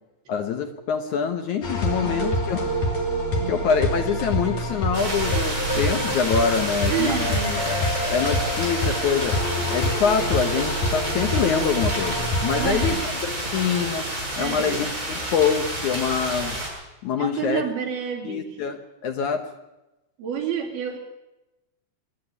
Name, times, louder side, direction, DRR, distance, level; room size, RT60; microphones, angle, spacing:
voice 1, 0.3-2.7 3.5-7.3 8.1-9.4 9.7-13.0 13.3-14.1 14.4-16.6 17.0-17.6 18.3-18.8 19.0-19.5, left 6 dB, 65° left, 6 dB, 2.2 m, -25 dB
sound 1, 1.6-13.0, equal, 50° left, 4.1 m, -26 dB
voice 2, 1.7-2.2 3.4-3.6 6.9-7.6 12.6-13.0 14.3-14.9 17.2-18.6 20.2-21.0, right 8 dB, 75° right, -1 dB, 4.8 m, -29 dB
sound 2, 4.9-16.7, right 1 dB, 20° right, 7.3 m, -30 dB
26.0 x 10.0 x 9.9 m, 0.99 s
omnidirectional pair, 4.4 m